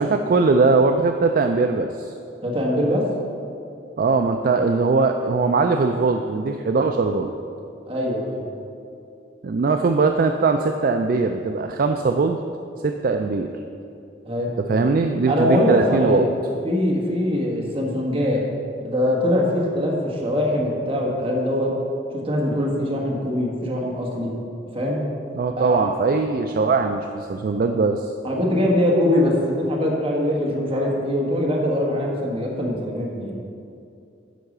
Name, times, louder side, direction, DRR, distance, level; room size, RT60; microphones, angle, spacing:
voice 1, 0.0-2.1 4.0-7.3 9.4-12.4 12.8-13.5 14.6-16.2 25.3-28.1, right 4 dB, 50° right, 5 dB, 0.3 m, -20 dB
voice 2, 2.4-3.0 7.9-8.4 14.2-14.5 15.3-16.3 16.6-18.4 18.8-21.7 22.1-24.3 24.7-25.0 25.6-25.9 28.2-33.4, left 1 dB, 30° right, -2 dB, 1.6 m, -22 dB
10.0 x 4.7 x 6.6 m, 2.6 s
head